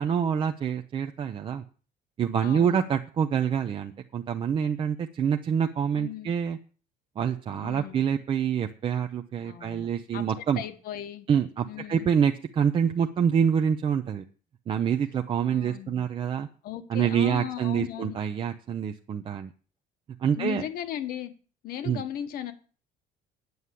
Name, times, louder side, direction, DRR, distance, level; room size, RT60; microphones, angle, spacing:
voice 1, 0.0-1.6 2.2-6.6 7.2-10.6 11.3-14.2 14.7-16.5 16.9-19.5 20.2-20.6 21.8-22.0, right 8 dB, 30° right, 5 dB, 0.6 m, -26 dB
voice 2, 2.4-2.8 6.0-6.3 7.6-8.0 9.4-11.3 11.6-12.1 15.4-16.0 16.6-18.2 20.3-21.3 21.6-22.5, left 10 dB, 60° left, 9 dB, 1.4 m, -37 dB
9.4 x 7.2 x 8.2 m, 0.39 s
cardioid pair, 170°, 17 cm